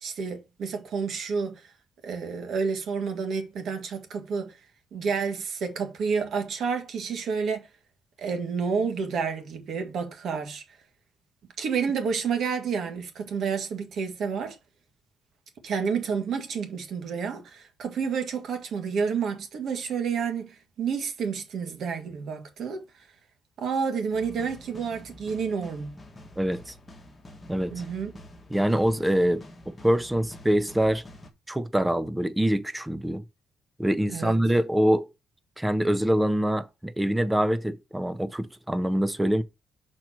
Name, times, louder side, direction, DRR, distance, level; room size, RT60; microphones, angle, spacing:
voice 1, 0.0-1.7 2.0-4.5 4.9-7.7 8.2-10.6 11.6-14.6 15.6-23.1 23.6-25.9 27.7-28.1 34.1-34.3, right 6 dB, 55° right, 1.7 m, -30 dB
sound 1, 24.1-31.3, left 1 dB, 15° left, 1.3 m, -47 dB
voice 2, 26.4-26.7 27.5-27.7 28.5-31.0 31.5-33.2 33.8-35.1 35.6-39.4, equal, 5° right, 0.6 m, -25 dB
5.9 x 4.5 x 6.2 m
cardioid pair, 170°, 0 cm